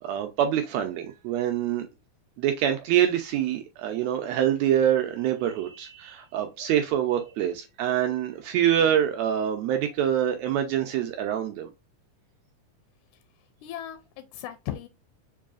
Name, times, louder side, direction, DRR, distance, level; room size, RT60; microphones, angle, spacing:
voice 1, 0.0-1.9 2.4-11.7, right 10 dB, 80° right, 1.6 m, -25 dB
voice 2, 13.6-14.9, left 11 dB, 85° left, 1.9 m, -37 dB
4.6 x 2.7 x 2.4 m
omnidirectional pair, 3.4 m